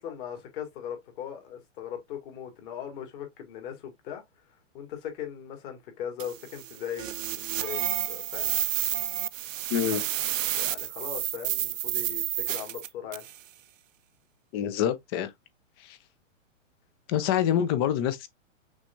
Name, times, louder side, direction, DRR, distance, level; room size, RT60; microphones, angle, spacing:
voice 1, 0.0-4.2 4.7-8.6 9.9-10.1 10.6-13.3, left 9 dB, 40° left, 2.1 m, -39 dB
sound 1, 6.2-13.4, right 12 dB, 75° right, 0.6 m, -30 dB
voice 2, 9.7-10.0 14.5-15.3 15.8-16.0 17.1-18.3, left 10 dB, 20° left, 0.4 m, -26 dB
6.1 x 3.4 x 2.6 m
hypercardioid pair, 140°, 39 cm